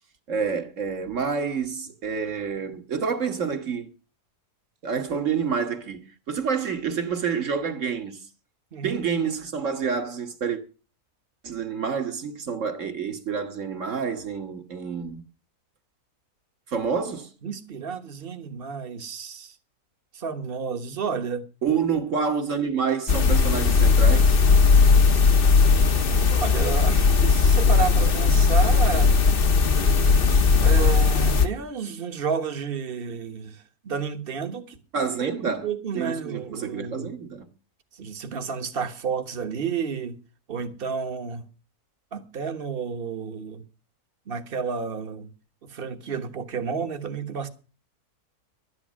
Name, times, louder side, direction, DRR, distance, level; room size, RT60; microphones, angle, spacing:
voice 1, 0.3-3.9 4.8-8.2 8.8-10.6 11.4-15.2 16.7-17.3 21.6-24.4 34.9-35.7 35.9-37.5, right 6 dB, 55° right, 1.7 m, -28 dB
voice 2, 17.4-19.5 20.1-21.5 26.3-29.1 29.9-30.3 30.6-37.1 37.9-40.2 40.5-41.4 42.1-43.6 44.3-45.3 45.6-47.5, right 6 dB, 40° right, 1.3 m, -31 dB
sound 1, 23.1-31.5, left 4 dB, 45° left, 1.0 m, -18 dB
12.0 x 9.8 x 6.2 m
omnidirectional pair, 1.6 m